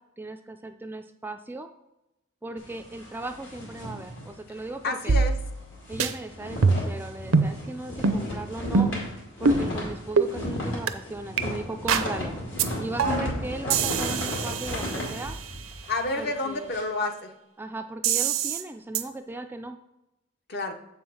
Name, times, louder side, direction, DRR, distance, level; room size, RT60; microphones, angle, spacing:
voice 1, 0.2-1.7 2.4-5.1 5.9-8.9 9.4-12.3 12.8-15.4 16.2-16.7 17.6-19.8, right 2 dB, 10° right, 7 dB, 0.3 m, -37 dB
sound 1, 2.6-4.8 5.2-5.3 5.6-16.8, left 1 dB, 70° left, 2.4 m, -34 dB
voice 2, 4.8-5.4 13.0-13.3 15.9-17.3 20.5-20.7, left 2 dB, 50° left, 6 dB, 0.8 m, -29 dB
sound 2, 5.1-5.7 6.0-6.1 6.6-7.0 7.3-7.5 8.0-8.2 8.7-9.0 9.5-9.6 10.2-10.3 10.9-11.0 11.4-11.5 11.9-12.1 12.6-12.7 13.0-13.3 13.7-15.5 18.0-18.6 19.0-19.1, right 5 dB, 90° right, 0.6 m, -24 dB
7.5 x 4.7 x 5.5 m, 0.94 s
head